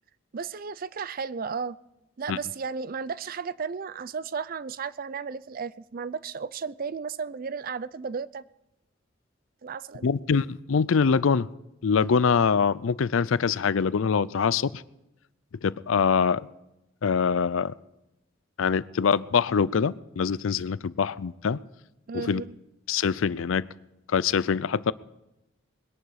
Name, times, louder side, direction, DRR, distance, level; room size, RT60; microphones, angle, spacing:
voice 1, 0.3-1.8 2.2-8.4 9.6-10.1 22.1-22.6, right 5 dB, 45° right, 18 dB, 0.4 m, -34 dB
voice 2, 10.0-11.5 11.8-14.8 15.6-16.5 17.0-17.7 18.6-21.6 22.1-22.4 22.9-23.7 24.1-24.9, left 6 dB, 80° left, 19 dB, 0.5 m, -24 dB
21.0 x 11.0 x 4.8 m, 0.93 s
head